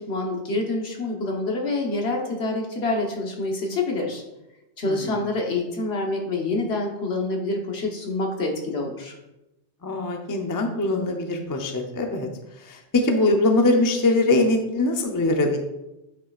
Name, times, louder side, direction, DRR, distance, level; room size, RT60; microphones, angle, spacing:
voice 1, 0.0-4.2 4.8-9.1, left 2 dB, 65° left, 1 dB, 1.4 m, -27 dB
voice 2, 4.8-5.2 9.8-12.3 12.6-15.6, left 2 dB, 25° left, 3 dB, 0.5 m, -22 dB
8.8 x 5.5 x 2.4 m, 0.94 s
omnidirectional pair, 1.2 m